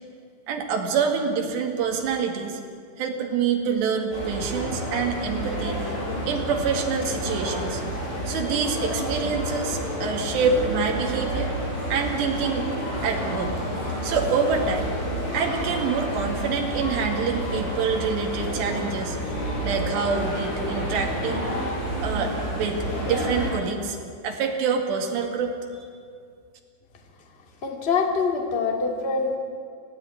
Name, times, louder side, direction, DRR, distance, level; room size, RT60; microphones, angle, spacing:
voice 1, 0.5-2.6 3.0-5.8 6.3-7.8 8.3-11.5 11.9-12.7 13.0-13.5 14.0-14.9 15.3-19.2 19.6-21.5 22.0-24.0 24.2-25.5, right 5 dB, 70° right, 2 dB, 4.2 m, -26 dB
sound 1, 4.1-23.5, equal, 90° left, 9.2 m, -29 dB
voice 2, 27.6-29.4, left 4 dB, 25° left, 1 dB, 1.4 m, -24 dB
24.0 x 15.5 x 9.9 m, 2.2 s
omnidirectional pair, 5.4 m